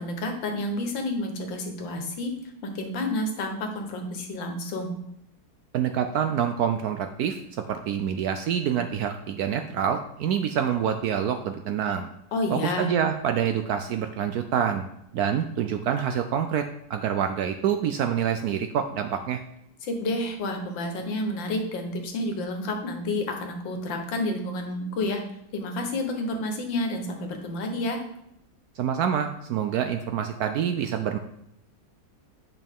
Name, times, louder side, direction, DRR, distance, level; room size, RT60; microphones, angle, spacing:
voice 1, 0.0-2.4 2.6-5.0 12.3-12.9 19.8-25.2 25.5-28.0, left 1 dB, 80° left, 3 dB, 1.8 m, -30 dB
voice 2, 5.7-12.1 12.5-14.9 15.1-19.4 28.8-31.2, right 8 dB, 75° right, 6 dB, 0.9 m, -26 dB
8.7 x 5.4 x 3.6 m, 0.77 s
omnidirectional pair, 2.0 m